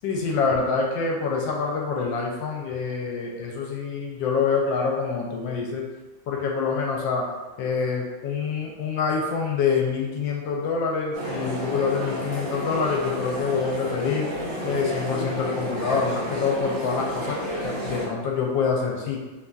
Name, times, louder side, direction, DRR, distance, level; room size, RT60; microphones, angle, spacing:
voice 1, 0.0-5.8 6.3-7.3 7.6-14.3 14.6-19.2, left 5 dB, 80° left, -1 dB, 1.3 m, -26 dB
sound 1, 11.1-18.1, equal, 80° right, 1.6 m, -31 dB
3.3 x 2.5 x 2.2 m, 1.2 s
omnidirectional pair, 2.1 m